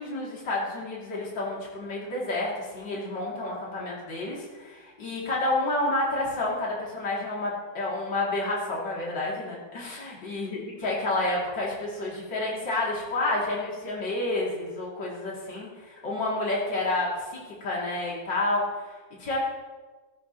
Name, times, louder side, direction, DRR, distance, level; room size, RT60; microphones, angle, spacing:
voice 1, 0.0-19.5, left 2 dB, 65° left, -5 dB, 3.7 m, -30 dB
16.5 x 15.0 x 3.1 m, 1.3 s
omnidirectional pair, 2.1 m